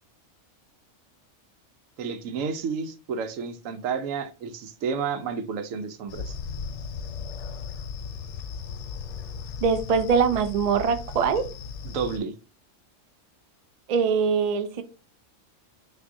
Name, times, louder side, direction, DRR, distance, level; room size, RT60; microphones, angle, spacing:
voice 1, 2.0-6.4 11.8-12.3, right 6 dB, 90° right, 1.0 m, -31 dB
sound 1, 6.1-12.2, left 5 dB, 70° left, 0.9 m, -36 dB
voice 2, 9.6-11.5 13.9-14.8, right 6 dB, 65° right, 0.4 m, -23 dB
6.0 x 2.7 x 2.6 m
omnidirectional pair, 1.3 m